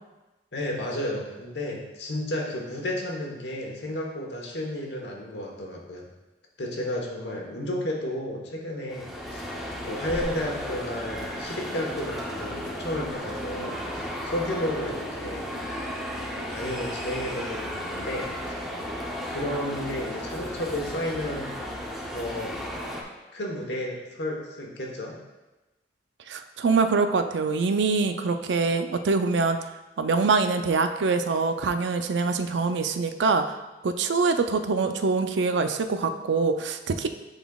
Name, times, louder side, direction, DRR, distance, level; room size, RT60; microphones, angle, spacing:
voice 1, 0.5-6.1 6.6-9.4 9.8-15.5 16.3-18.3 19.2-21.5 22.1-22.6 23.3-25.2, left 1 dB, 70° left, -1 dB, 1.1 m, -32 dB
sound 1, 8.9-23.0, equal, ahead, 0.7 m, -34 dB
voice 2, 26.3-29.6 30.0-33.6 33.8-37.1, right 4 dB, 80° right, 8 dB, 0.4 m, -24 dB
10.5 x 4.0 x 2.3 m, 1.1 s
head